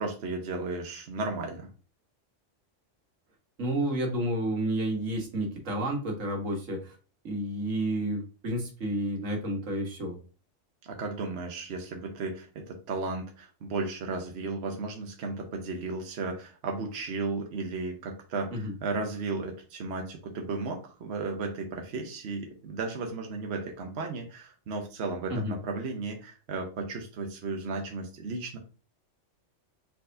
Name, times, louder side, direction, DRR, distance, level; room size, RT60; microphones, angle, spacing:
voice 1, 0.0-1.7 10.8-28.6, right 3 dB, 60° right, 3 dB, 1.1 m, -34 dB
voice 2, 3.6-7.0 7.2-10.2 18.5-18.7 25.3-25.5, right 1 dB, 90° right, 1 dB, 1.6 m, -30 dB
4.4 x 4.2 x 2.6 m, 0.35 s
omnidirectional pair, 1.3 m